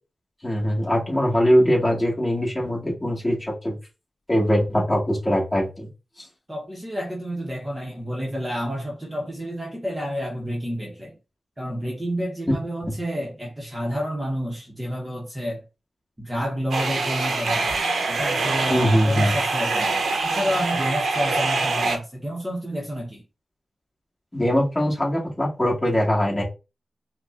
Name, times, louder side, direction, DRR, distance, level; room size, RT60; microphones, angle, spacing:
voice 1, 0.4-3.8 4.3-5.9 12.9-13.0 18.7-19.3 24.3-26.4, equal, 15° left, 1.7 m, -21 dB
voice 2, 6.5-11.1 11.6-15.6 16.2-17.7 18.1-23.2, equal, 15° right, 0.9 m, -30 dB
sound 1, 16.7-22.0, right 3 dB, 80° right, 0.7 m, -24 dB
5.0 x 2.2 x 2.5 m
wide cardioid pair, 90°, 0 cm